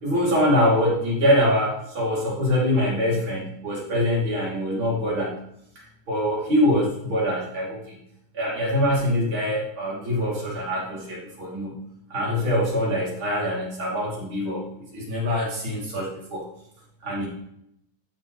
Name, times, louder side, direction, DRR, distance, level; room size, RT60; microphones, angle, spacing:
voice 1, 0.0-5.3 6.1-8.0 8.3-11.8 12.1-16.4 17.0-17.3, equal, 35° right, -5 dB, 3.0 m, -24 dB
14.0 x 6.0 x 3.1 m, 0.73 s
omnidirectional pair, 4.5 m